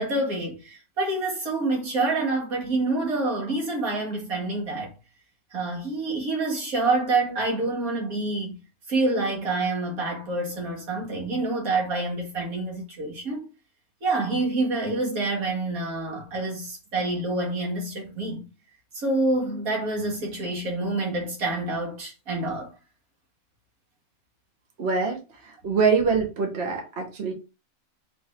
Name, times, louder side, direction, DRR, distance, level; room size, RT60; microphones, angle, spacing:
voice 1, 0.0-4.9 5.5-8.6 8.9-13.5 14.0-18.5 18.9-22.7, right 2 dB, 75° right, 2.0 m, -27 dB
voice 2, 24.8-27.3, right 5 dB, 50° right, 1.3 m, -24 dB
3.5 x 3.4 x 4.3 m
omnidirectional pair, 1.5 m